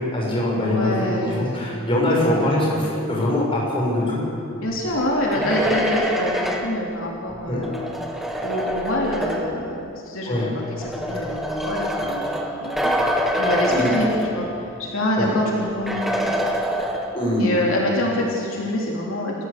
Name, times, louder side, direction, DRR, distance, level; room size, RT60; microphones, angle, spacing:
voice 1, 0.0-4.2 5.4-5.5 7.5-7.6 10.3-10.5 13.6-13.9 15.2-15.3 17.1-17.5, left 1 dB, 25° left, -4 dB, 6.4 m, -22 dB
voice 2, 0.6-1.7 2.2-2.6 4.6-7.9 8.4-16.3 17.4-19.3, left 1 dB, 75° left, -2 dB, 3.2 m, -26 dB
sound 1, 5.0-9.7 10.6-14.8 15.1-15.2 15.9-17.4, equal, ahead, 1.8 m, -26 dB
29.5 x 14.5 x 6.8 m, 2.5 s
head